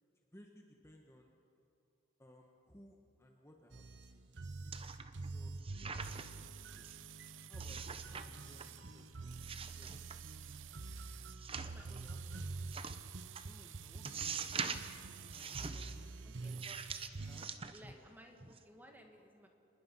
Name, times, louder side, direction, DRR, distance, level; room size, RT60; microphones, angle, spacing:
voice 1, 0.3-1.3 2.2-4.2 4.6-4.8 5.3-5.5 5.8-6.5 6.7-6.9 7.5-10.2 13.4-14.5 15.2-16.6 17.3-17.5 17.8-18.0, equal, 15° left, 1 dB, 1.3 m, -61 dB
sound 1, 3.7-17.5, right 3 dB, 60° right, 0.9 m, -47 dB
sound 2, 4.7-5.3 5.6-6.4 6.8-7.0 7.6-8.3 8.6-9.0 9.4-10.5 11.3-12.0 12.7-13.0 13.4-13.5 14.0-15.0 15.3-16.0 16.6-18.1 18.4-18.6, right 5 dB, 30° right, 0.9 m, -44 dB
sound 3, 6.0-17.1, right 16 dB, 80° right, 0.4 m, -55 dB
voice 2, 11.5-12.5 16.2-16.8 17.7-19.5, equal, 10° right, 3 dB, 1.9 m, -59 dB
26.0 x 20.5 x 5.6 m, 2.8 s
head